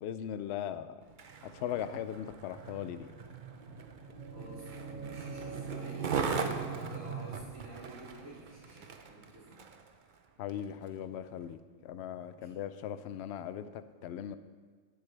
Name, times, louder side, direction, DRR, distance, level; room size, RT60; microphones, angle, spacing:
voice 1, 0.0-0.9 1.6-3.1 10.4-14.4, left 10 dB, 65° left, 12 dB, 0.7 m, -39 dB
Skateboard, 1.0-9.9 10.5-10.6, right 5 dB, 50° right, 0.7 m, -39 dB
sound 1, 3.6-9.4, right 5 dB, 25° right, 1.2 m, -46 dB
voice 2, 4.3-9.8 12.3-12.5, right 1 dB, 70° right, -9 dB, 3.0 m, -50 dB
17.5 x 8.0 x 3.3 m, 1.5 s
omnidirectional pair, 1.4 m